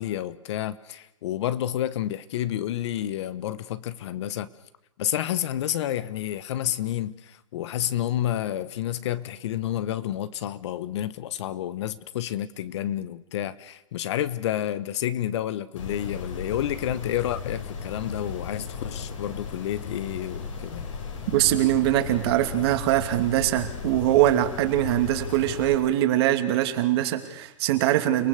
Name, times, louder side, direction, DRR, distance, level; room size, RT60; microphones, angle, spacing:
voice 1, 0.0-4.5 5.0-20.8, left 12 dB, 60° left, 1.3 m, -30 dB
sound 1, 15.8-25.8, left 5 dB, 80° left, 6.0 m, -36 dB
voice 2, 21.3-28.3, right 13 dB, 55° right, 2.8 m, -22 dB
30.0 x 19.0 x 6.7 m
hypercardioid pair, 120°, 16 cm